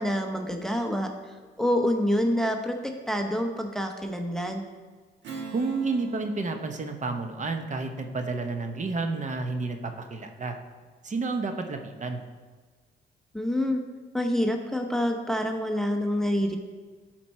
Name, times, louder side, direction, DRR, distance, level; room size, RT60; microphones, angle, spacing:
voice 1, 0.0-4.6 13.3-13.8 14.1-16.6, equal, ahead, 4 dB, 0.7 m, -27 dB
Strum, 5.2-10.1, right 4 dB, 65° right, 1.4 m, -46 dB
voice 2, 5.5-10.6 11.0-12.2, right 3 dB, 40° right, 6 dB, 0.9 m, -30 dB
12.0 x 4.5 x 4.3 m, 1.5 s
cardioid pair, 90°, 20 cm